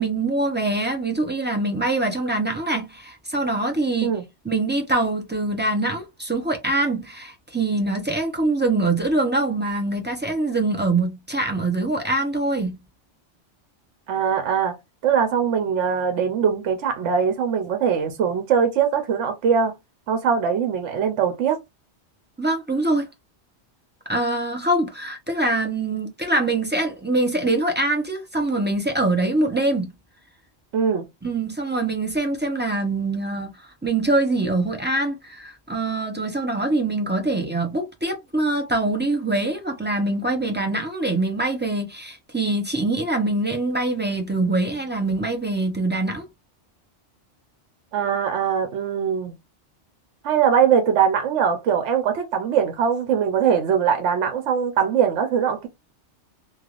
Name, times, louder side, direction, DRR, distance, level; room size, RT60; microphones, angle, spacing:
voice 1, 0.0-4.2 4.4-12.8 22.4-23.1 24.1-29.9 31.2-46.3, right 2 dB, 15° right, 0.5 m, -24 dB
voice 2, 14.1-14.7 15.0-19.7 20.1-21.6 30.7-31.1 47.9-49.3 50.2-55.7, right 7 dB, 80° right, 1.0 m, -21 dB
3.2 x 2.4 x 2.4 m
omnidirectional pair, 1.2 m